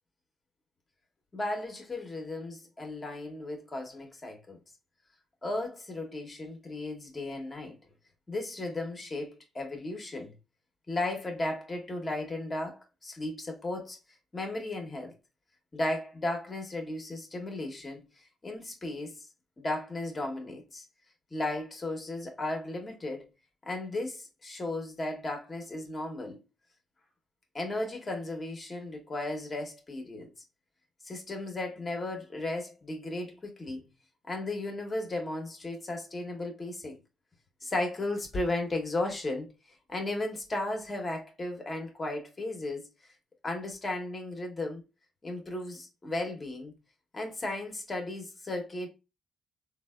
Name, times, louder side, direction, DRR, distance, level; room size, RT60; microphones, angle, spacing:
voice 1, 1.3-4.6 5.4-7.8 8.3-10.3 10.9-14.0 14.3-15.1 15.7-19.3 19.6-20.8 21.3-23.3 23.7-26.4 27.5-30.3 31.0-33.9 34.3-37.0 37.6-39.5 39.9-42.9 43.4-44.8 45.2-46.7 47.1-48.9, left 2 dB, 30° left, 0.8 m, -35 dB
3.3 x 2.1 x 2.2 m
cardioid pair, 90°, 0 cm